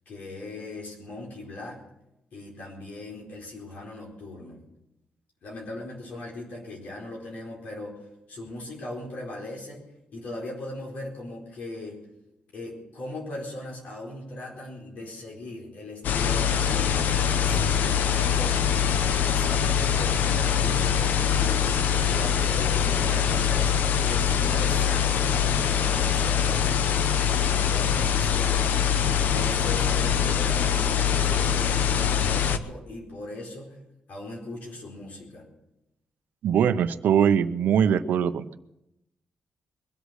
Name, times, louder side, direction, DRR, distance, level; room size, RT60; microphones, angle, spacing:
voice 1, 0.1-1.8 2.3-4.6 5.4-9.8 10.1-12.0 12.5-18.7 19.2-27.2 27.7-28.7 29.2-33.8 34.1-35.5, left 2 dB, 65° left, -2 dB, 4.5 m, -39 dB
sound 1, 16.0-32.6, left 8 dB, 90° left, 0.8 m, -23 dB
voice 2, 36.4-38.6, right 8 dB, 80° right, 12 dB, 0.7 m, -22 dB
22.5 x 8.3 x 6.5 m, 0.86 s
wide cardioid pair, 165°, 3 cm